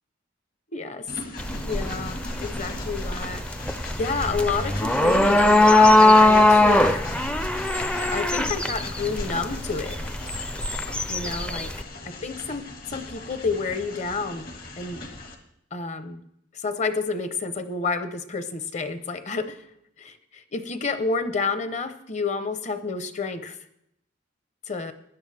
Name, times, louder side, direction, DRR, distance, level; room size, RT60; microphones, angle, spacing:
voice 1, 0.7-1.1 1.6-3.4 3.8-7.1 7.7-10.0 11.1-11.7 12.0-14.5 14.8-15.0 15.7-16.2 16.5-19.6 20.0-23.6 24.7-24.9, left 4 dB, 40° left, 10 dB, 0.9 m, -29 dB
Train, 1.1-15.4, left 2 dB, 55° left, 1.7 m, -39 dB
sound 1, 1.4-11.8, left 2 dB, 5° left, 0.4 m, -20 dB
16.0 x 10.5 x 3.5 m, 0.76 s
head